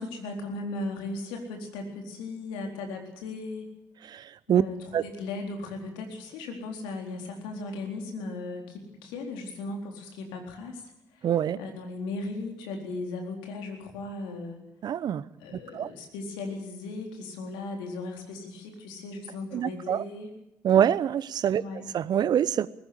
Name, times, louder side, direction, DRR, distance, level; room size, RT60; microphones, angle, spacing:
voice 1, 0.0-3.7 4.5-10.8 11.1-11.3 11.6-14.6 15.4-20.3 21.5-21.9, left 3 dB, 80° left, 3 dB, 4.0 m, -37 dB
voice 2, 4.1-4.6 4.9-5.0 11.2-11.6 14.8-15.2 15.5-15.9 19.5-20.0 20.6-21.6 21.9-22.7, right 9 dB, 60° right, 18 dB, 0.9 m, -25 dB
21.0 x 14.0 x 9.5 m, 0.86 s
hypercardioid pair, 45°, 8 cm